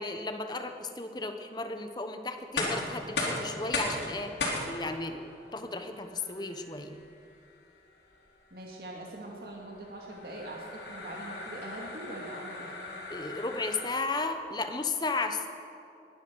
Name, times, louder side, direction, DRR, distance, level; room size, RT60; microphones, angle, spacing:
voice 1, 0.0-4.3 4.6-7.0 13.1-15.5, left 3 dB, 25° left, 7 dB, 0.9 m, -34 dB
sound 1, 2.4-14.3, left 2 dB, 80° left, 3.7 m, -38 dB
voice 2, 8.5-12.8, right 1 dB, 55° right, -2 dB, 2.1 m, -42 dB
20.5 x 10.5 x 6.2 m, 2.6 s
head